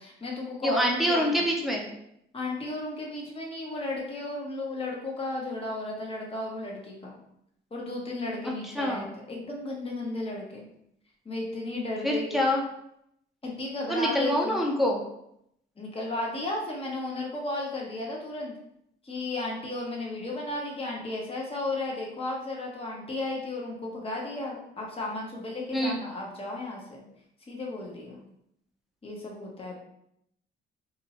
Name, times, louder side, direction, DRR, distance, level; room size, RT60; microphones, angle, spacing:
voice 1, 0.0-1.4 2.3-7.1 7.7-10.6 11.2-12.4 13.4-14.6 15.8-18.5 19.0-27.0 27.5-28.2 29.0-29.8, left 2 dB, 30° left, -2 dB, 1.0 m, -34 dB
voice 2, 0.6-1.8 8.4-9.1 12.0-12.6 13.9-15.0 25.7-26.0, equal, ahead, -1 dB, 0.7 m, -26 dB
2.7 x 2.6 x 4.1 m, 0.76 s
cardioid pair, 90°, 20 cm